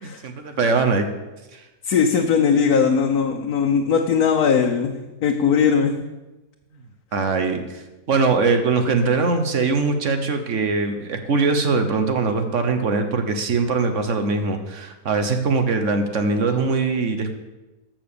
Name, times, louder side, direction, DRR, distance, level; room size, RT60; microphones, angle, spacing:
voice 1, 0.0-1.1 1.5-1.6 7.1-7.8 8.1-17.3, right 4 dB, 60° right, 7 dB, 1.3 m, -22 dB
voice 2, 1.8-6.0, left 6 dB, 85° left, 2 dB, 1.4 m, -19 dB
14.0 x 6.0 x 6.8 m, 1.1 s
omnidirectional pair, 1.5 m